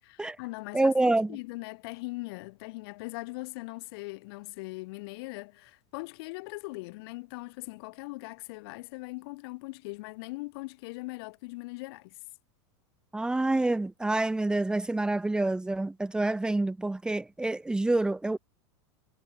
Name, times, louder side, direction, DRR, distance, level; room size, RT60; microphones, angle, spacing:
voice 1, 0.0-0.9 1.3-12.2, left 24 dB, 55° left, 7.1 m, -40 dB
voice 2, 0.7-1.3 13.1-18.4, right 2 dB, 5° right, 3.0 m, -27 dB
supercardioid pair, 150°, 15 cm